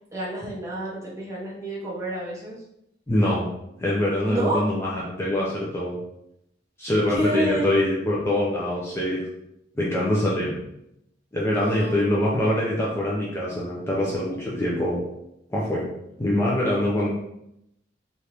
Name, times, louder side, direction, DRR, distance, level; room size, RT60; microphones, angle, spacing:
voice 1, 0.1-2.6 4.2-4.6 7.1-7.9 11.5-12.0, equal, 15° right, -5 dB, 0.8 m, -29 dB
voice 2, 3.1-3.5 3.8-6.0 6.8-9.2 9.8-10.6 11.3-15.0 15.5-15.9 16.2-17.1, left 1 dB, 15° left, -6 dB, 0.4 m, -24 dB
3.3 x 2.5 x 2.8 m, 0.81 s
head